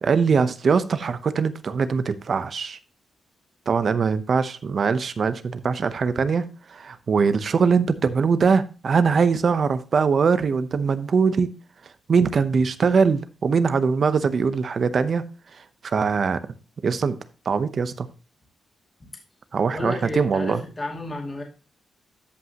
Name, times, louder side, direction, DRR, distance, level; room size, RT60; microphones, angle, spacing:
voice 1, 0.0-2.8 3.7-6.4 6.7-11.5 12.1-15.2 15.8-16.4 16.8-17.2 17.5-18.1 19.5-20.6, right 5 dB, 45° right, 13 dB, 0.7 m, -22 dB
voice 2, 19.7-21.4, left 2 dB, 25° left, 0 dB, 2.3 m, -31 dB
13.5 x 5.4 x 2.9 m, 0.33 s
wide cardioid pair, 140°, 0 cm